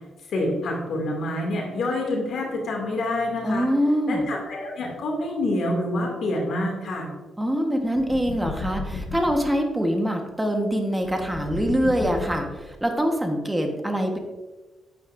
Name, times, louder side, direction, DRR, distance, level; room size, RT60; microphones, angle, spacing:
voice 1, 0.3-3.7 4.1-7.1, left 1 dB, 65° left, -1 dB, 2.3 m, -27 dB
voice 2, 3.4-4.3 7.4-14.2, equal, 10° right, 3 dB, 1.3 m, -24 dB
sound 1, 7.9-9.5 11.0-12.9, left 3 dB, 50° left, 1.0 m, -34 dB
9.0 x 9.0 x 2.6 m, 1.2 s
cardioid pair, 110°, 0 cm